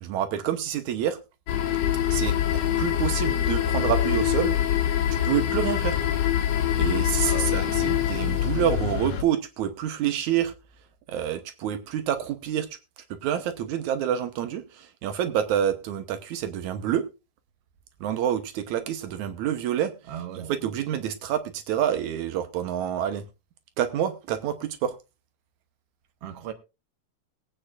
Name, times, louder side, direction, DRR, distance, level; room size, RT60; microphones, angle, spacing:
voice 1, 0.0-1.2 2.1-2.3 2.8-4.6 5.2-6.0 6.7-10.5 11.1-12.7 13.2-17.0 18.0-23.2 23.8-24.9, right 10 dB, 85° right, 2.4 m, -27 dB
sound 1, 1.5-9.2, left 10 dB, 65° left, 2.5 m, -24 dB
voice 2, 7.2-7.6 20.1-20.5 26.2-26.5, right 9 dB, 60° right, 2.1 m, -37 dB
21.0 x 8.9 x 2.5 m
omnidirectional pair, 3.3 m